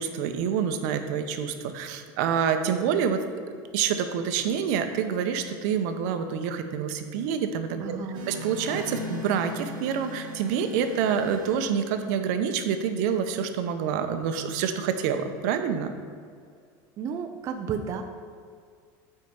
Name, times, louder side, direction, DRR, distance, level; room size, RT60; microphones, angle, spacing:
voice 1, 0.0-3.2 3.7-8.0 8.3-15.9, right 7 dB, 70° right, 8 dB, 0.7 m, -27 dB
voice 2, 7.8-8.3 17.0-18.0, right 6 dB, 35° right, 5 dB, 0.4 m, -32 dB
sound 1, 8.1-12.4, equal, 50° right, 1.6 m, -38 dB
8.1 x 4.6 x 5.3 m, 2.2 s
cardioid pair, 160°, 10 cm